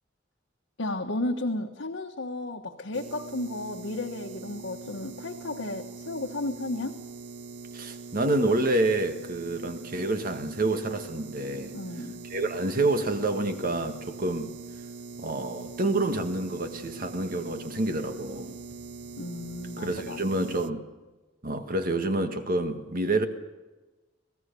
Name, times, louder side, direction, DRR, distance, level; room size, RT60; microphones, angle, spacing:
voice 1, 0.8-7.0 11.7-12.1 19.2-20.2, left 2 dB, 85° left, 2 dB, 1.3 m, -33 dB
sound 1, 2.9-20.7, right 4 dB, 65° right, 0.6 m, -42 dB
voice 2, 7.7-11.7 12.3-14.5 15.2-18.6 19.8-20.8 21.4-23.3, right 2 dB, 50° right, 7 dB, 1.8 m, -28 dB
27.5 x 17.5 x 6.9 m, 1.1 s
head